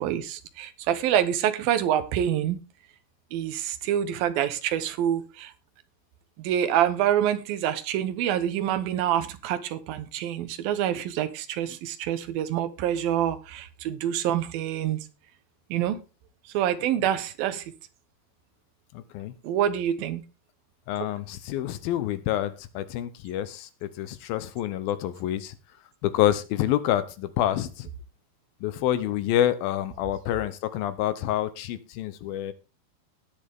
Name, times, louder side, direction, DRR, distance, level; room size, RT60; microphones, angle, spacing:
voice 1, 0.0-2.6 3.3-5.5 6.4-15.0 15.7-16.0 16.5-17.6 19.4-20.2, right 10 dB, 70° right, 2.6 m, -26 dB
voice 2, 18.9-19.3 20.9-25.5 26.0-27.9 28.6-32.5, left 12 dB, 75° left, 2.4 m, -27 dB
19.0 x 7.1 x 3.6 m
omnidirectional pair, 4.8 m